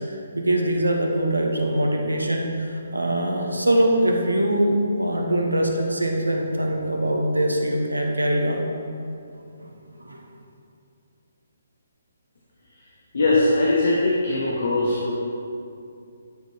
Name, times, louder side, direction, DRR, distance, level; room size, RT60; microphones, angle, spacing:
voice 1, 0.1-8.6 10.0-10.2, right 1 dB, 80° right, 1 dB, 0.8 m, -23 dB
voice 2, 13.1-15.1, left 2 dB, 55° left, -4 dB, 0.8 m, -21 dB
9.4 x 4.4 x 2.7 m, 2.5 s
figure-of-eight pair, 135°, 0 cm